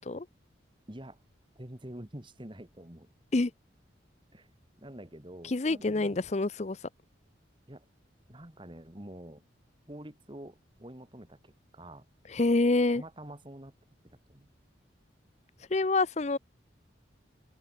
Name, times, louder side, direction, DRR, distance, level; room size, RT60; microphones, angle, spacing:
voice 1, 0.9-1.2 1.6-3.1 4.3-4.5 4.8-6.2 7.7-7.9 8.3-9.4 9.9-12.1 12.9-13.7 14.1-14.5, right 1 dB, 25° right, 2.0 m, -47 dB
voice 2, 5.5-6.8 12.3-13.0 15.7-16.4, left 2 dB, 35° left, 0.6 m, -27 dB
open air
head